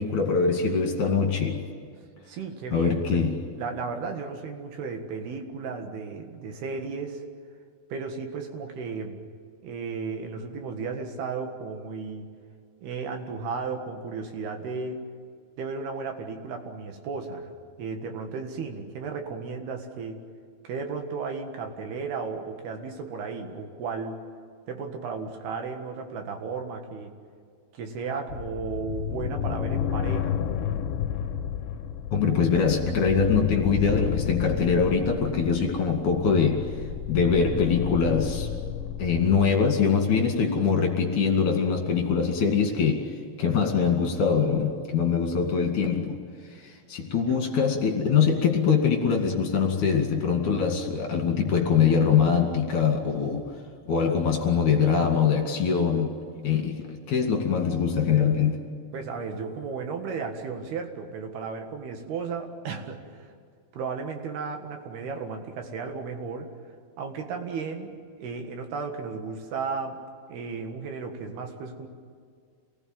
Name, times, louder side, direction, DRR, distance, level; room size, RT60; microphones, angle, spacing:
voice 1, 0.0-1.6 2.7-3.5 32.1-36.7 37.1-38.5 39.0-46.2 46.5-53.4 53.9-58.6, left 6 dB, 50° left, 2 dB, 3.4 m, -23 dB
voice 2, 2.3-7.2 7.9-9.3 9.6-12.3 12.8-15.0 15.6-20.2 20.6-24.2 24.7-27.1 27.7-30.4 58.9-63.3 63.7-66.5 67.0-70.0 70.3-71.9, right 5 dB, 70° right, 4 dB, 3.6 m, -34 dB
sound 1, 28.3-39.5, left 9 dB, 70° left, 2.7 m, -31 dB
28.0 x 19.5 x 9.4 m, 2.1 s
omnidirectional pair, 5.0 m